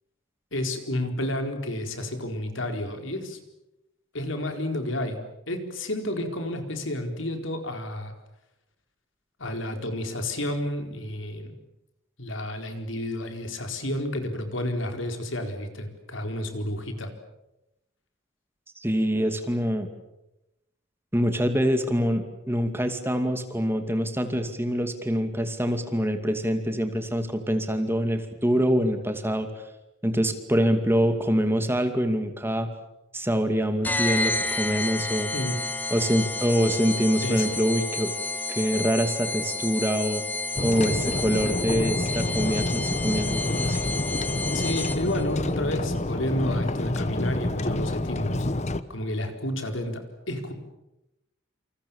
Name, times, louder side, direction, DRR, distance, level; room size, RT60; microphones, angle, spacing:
voice 1, 0.5-3.4 4.1-8.1 9.4-11.6 12.2-17.1 35.3-35.6 37.2-37.6 44.5-48.5 48.9-50.5, left 1 dB, 75° left, 6 dB, 4.5 m, -31 dB
voice 2, 18.8-19.9 21.1-29.5 30.0-32.7 33.1-35.3 35.9-38.1 38.5-40.2 40.6-43.8, equal, 10° right, 7 dB, 2.5 m, -25 dB
sound 1, 33.8-45.2, left 2 dB, 10° left, 1.6 m, -31 dB
sound 2, 40.6-48.8, left 2 dB, 35° left, 1.2 m, -28 dB
28.5 x 27.5 x 7.3 m, 0.92 s
head